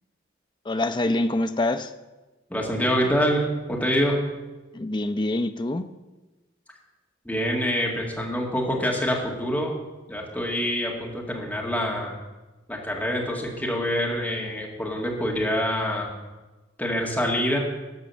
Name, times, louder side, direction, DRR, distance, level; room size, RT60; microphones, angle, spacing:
voice 1, 0.7-1.9 4.7-5.8, left 2 dB, 25° left, 9 dB, 0.5 m, -25 dB
voice 2, 2.5-4.2 7.3-9.7 10.1-12.1 12.7-16.1 16.8-17.6, equal, 10° left, -1 dB, 2.1 m, -26 dB
13.0 x 5.4 x 7.0 m, 1.1 s
head